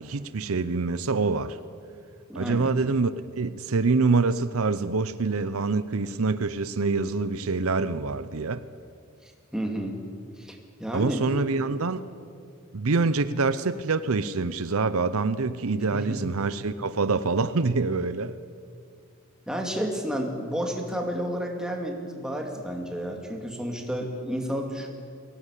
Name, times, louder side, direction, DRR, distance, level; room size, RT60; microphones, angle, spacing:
voice 1, 0.0-1.6 2.3-8.6 10.9-12.0 12.7-18.3, right 4 dB, 75° right, 14 dB, 0.7 m, -25 dB
voice 2, 2.3-2.7 9.2-10.0 10.4-11.2 15.9-16.2 19.5-24.9, equal, 5° right, 2 dB, 2.4 m, -31 dB
22.5 x 18.0 x 8.3 m, 2.3 s
head